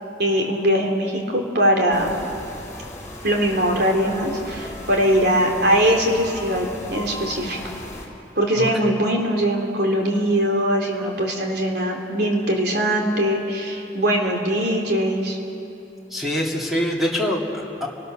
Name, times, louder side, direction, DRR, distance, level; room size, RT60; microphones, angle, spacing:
voice 1, 0.2-2.2 3.2-7.6 8.4-15.4, equal, 65° right, 1 dB, 3.4 m, -21 dB
sound 1, 1.9-8.1, left 1 dB, 15° left, 3.9 m, -37 dB
voice 2, 8.6-8.9 16.1-17.9, equal, ahead, -3 dB, 2.5 m, -25 dB
30.0 x 20.0 x 6.5 m, 2.9 s
head